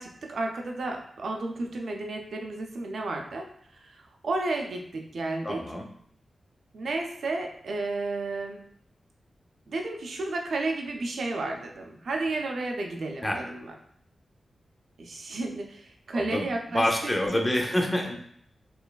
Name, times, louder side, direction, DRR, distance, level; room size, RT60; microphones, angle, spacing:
voice 1, 0.0-3.5 3.7-5.6 6.7-8.7 9.7-13.7 15.0-16.9 17.3-17.4, right 2 dB, 70° right, 2 dB, 0.4 m, -32 dB
voice 2, 5.4-5.9 13.2-13.4 16.1-16.5 16.7-18.2, left 1 dB, 15° left, 2 dB, 0.4 m, -27 dB
3.0 x 2.2 x 2.2 m, 0.64 s
wide cardioid pair, 155°, 0 cm